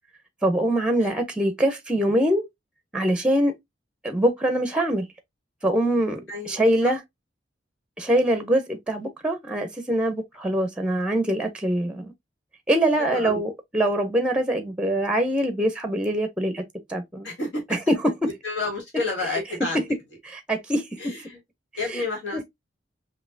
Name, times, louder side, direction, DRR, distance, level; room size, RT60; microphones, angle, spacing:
voice 1, 0.4-2.5 2.9-3.6 4.0-5.1 5.6-6.2 6.5-7.0 8.0-12.1 12.7-16.6 16.9-17.3 17.9-18.0 20.2-21.1 21.9-22.0 22.3-22.4, right 1 dB, 5° right, 0.5 m, -23 dB
voice 2, 6.3-6.9 13.0-13.4 17.2-17.8 18.2-19.9 21.0-21.4 21.8-22.4, left 2 dB, 80° left, 1.9 m, -30 dB
5.2 x 2.7 x 2.6 m
head